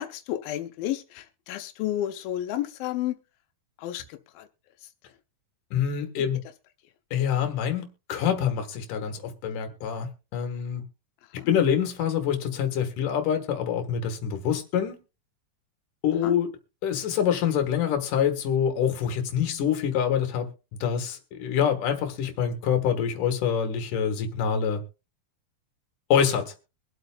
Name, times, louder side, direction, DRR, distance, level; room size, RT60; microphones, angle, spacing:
voice 1, 0.0-3.1 3.8-4.5 11.4-11.5 16.2-16.4, left 12 dB, 90° left, 2.5 m, -31 dB
voice 2, 5.7-6.4 7.1-10.8 11.5-15.0 16.0-16.5 16.8-20.5 20.8-24.8 26.1-26.5, left 8 dB, 70° left, 3.0 m, -26 dB
23.5 x 8.0 x 2.3 m
omnidirectional pair, 4.0 m